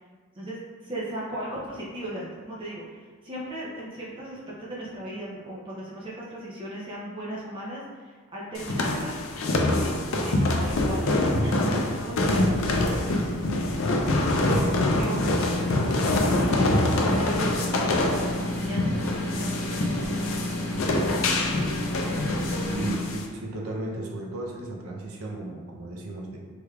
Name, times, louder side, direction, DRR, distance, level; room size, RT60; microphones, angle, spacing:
voice 1, 0.3-9.2 9.6-19.9, right 1 dB, 25° right, -6 dB, 0.5 m, -37 dB
sound 1, 8.5-23.2, left 2 dB, 65° left, 0.4 m, -25 dB
sound 2, 12.2-22.9, left 1 dB, 85° left, 0.8 m, -31 dB
voice 2, 22.7-26.4, right 2 dB, 90° right, -1 dB, 0.6 m, -35 dB
3.3 x 3.2 x 2.3 m, 1.5 s
head